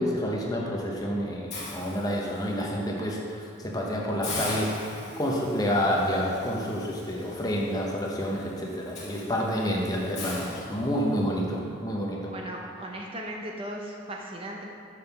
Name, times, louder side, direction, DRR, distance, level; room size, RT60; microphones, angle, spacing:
voice 1, 0.0-12.3, equal, 20° left, -2 dB, 0.8 m, -29 dB
Hiss, 1.5-2.6 3.1-3.3 3.6-3.7 4.2-11.3, left 2 dB, 35° left, 1.7 m, -40 dB
voice 2, 12.3-14.6, right 1 dB, 30° right, -1 dB, 0.6 m, -37 dB
6.4 x 5.3 x 5.7 m, 2.4 s
head